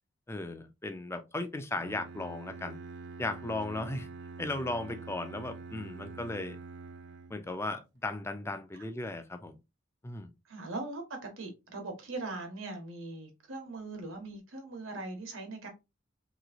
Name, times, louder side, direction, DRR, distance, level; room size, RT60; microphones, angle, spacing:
voice 1, 0.3-2.8 3.2-4.1 4.4-6.6 7.3-9.6 10.0-10.3, left 2 dB, 15° left, 0.4 m, -36 dB
Bowed string instrument, 1.8-7.6, right 4 dB, 55° right, 0.3 m, -46 dB
voice 2, 10.4-15.7, right 2 dB, 80° right, 1.2 m, -40 dB
3.1 x 3.0 x 2.5 m
head